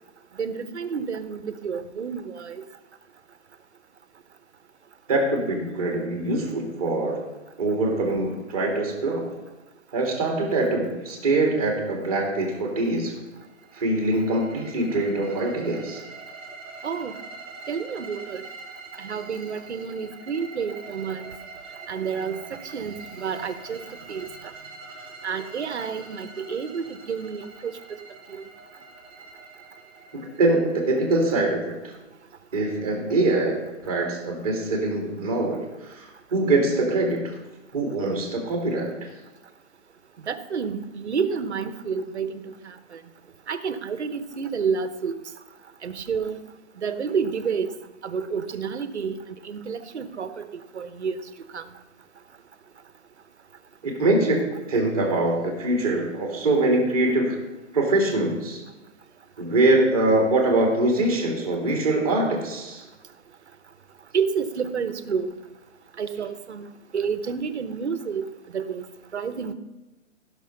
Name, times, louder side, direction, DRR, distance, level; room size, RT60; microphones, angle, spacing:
voice 1, 0.4-2.6 16.8-17.1 17.7-18.4 19.0-21.4 21.9-24.3 25.2-27.7 28.3-28.4 40.2-43.0 43.5-45.1 45.8-46.4 46.8-47.7 48.0-49.2 49.4-50.5 50.7-51.2 51.5-51.6 64.1-65.3 66.0-66.7 66.9-68.9 69.1-69.5, right 6 dB, 60° right, 11 dB, 1.0 m, -29 dB
voice 2, 5.1-7.3 7.6-9.3 9.9-13.2 13.7-16.0 30.1-31.9 32.5-37.4 37.7-39.1 53.8-57.4 57.7-58.6 59.4-62.8, right 2 dB, 30° right, 1 dB, 2.0 m, -23 dB
sound 1, 13.4-31.2, right 3 dB, 10° right, 2.2 m, -44 dB
15.5 x 6.2 x 5.6 m, 1.1 s
hypercardioid pair, 180°, 38 cm